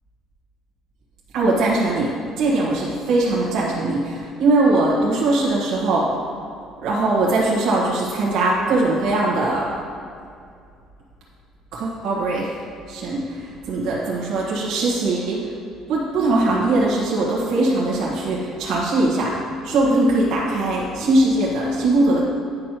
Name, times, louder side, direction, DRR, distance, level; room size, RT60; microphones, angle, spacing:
voice 1, 1.3-2.1 2.4-6.1 6.8-9.6 11.7-12.5 12.9-15.5 15.9-22.3, right 2 dB, 60° right, -7 dB, 1.3 m, -20 dB
9.2 x 6.3 x 3.0 m, 2.4 s
cardioid pair, 175°, 0 cm